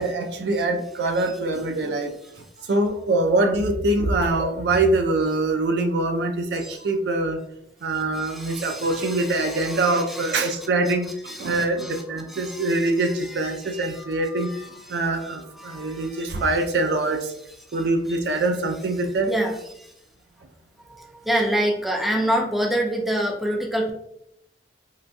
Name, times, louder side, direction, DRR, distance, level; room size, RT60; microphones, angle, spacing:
voice 1, 0.0-2.2 2.7-7.4 7.8-14.5 14.9-17.3 17.7-19.3, right 2 dB, 65° right, 5 dB, 0.4 m, -24 dB
voice 2, 7.9-10.6 10.8-10.9 11.3-16.5 17.7-18.4 19.3-19.9 20.8-23.9, right 1 dB, ahead, 0 dB, 0.4 m, -29 dB
3.8 x 2.5 x 2.2 m, 0.76 s
head